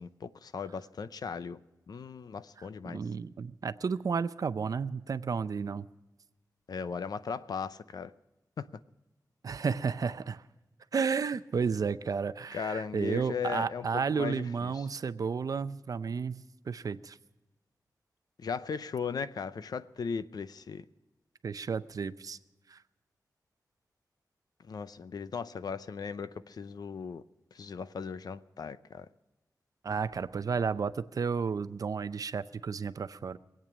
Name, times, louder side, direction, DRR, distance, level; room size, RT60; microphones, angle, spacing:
voice 1, 0.0-1.6 1.9-3.0 6.7-8.1 8.6-8.7 12.5-14.9 18.4-20.8 24.6-27.2 27.5-29.1, left 6 dB, 75° left, 0.6 m, -37 dB
voice 2, 2.9-5.9 9.4-10.4 10.9-17.2 21.4-22.4 22.7-22.8 29.8-33.4, right 5 dB, 60° right, 0.5 m, -32 dB
24.0 x 8.9 x 6.1 m
wide cardioid pair, 120°, 7 cm